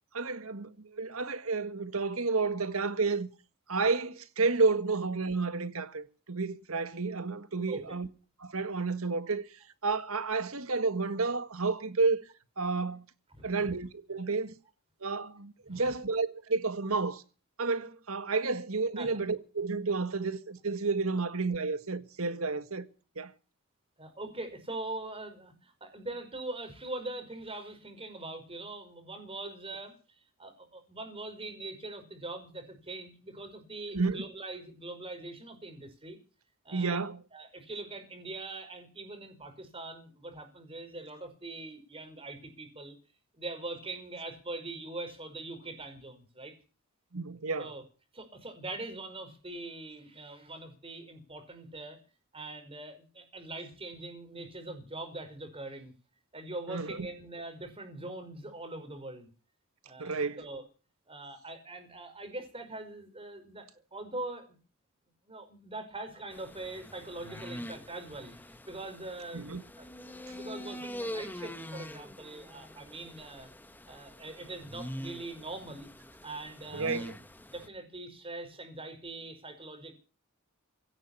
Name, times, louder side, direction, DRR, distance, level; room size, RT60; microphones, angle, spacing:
voice 1, 0.1-3.3 3.7-8.1 8.4-9.4 9.8-12.2 12.6-13.1 13.4-14.5 15.0-17.2 17.6-22.9 23.2-23.3 33.9-34.2 36.7-37.2 47.1-47.7 56.7-57.1 60.0-60.5 69.3-69.6 76.7-77.1, right 4 dB, 70° right, 1.7 m, -31 dB
voice 2, 13.3-13.7 15.7-15.9 19.0-19.1 24.0-36.2 36.6-37.0 37.3-43.0 43.4-46.6 47.6-47.8 48.1-52.0 52.3-55.9 56.3-59.3 59.9-60.6 61.1-64.6 65.2-73.5 73.9-75.9 76.2-77.1 77.5-79.9, right 2 dB, 25° right, 5.2 m, -42 dB
sound 1, 66.3-77.7, equal, 10° left, 1.3 m, -44 dB
17.5 x 9.9 x 8.5 m
head